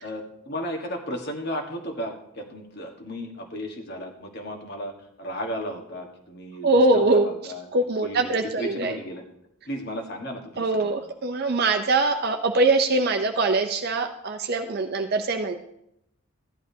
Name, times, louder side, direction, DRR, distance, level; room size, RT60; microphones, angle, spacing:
voice 1, 0.0-4.9 5.2-7.7 8.0-9.2 9.7-10.9, equal, 50° left, 3 dB, 1.5 m, -34 dB
voice 2, 6.6-7.3 7.7-9.0 10.6-15.6, right 2 dB, 50° right, 5 dB, 0.5 m, -22 dB
15.0 x 11.0 x 2.8 m, 0.80 s
head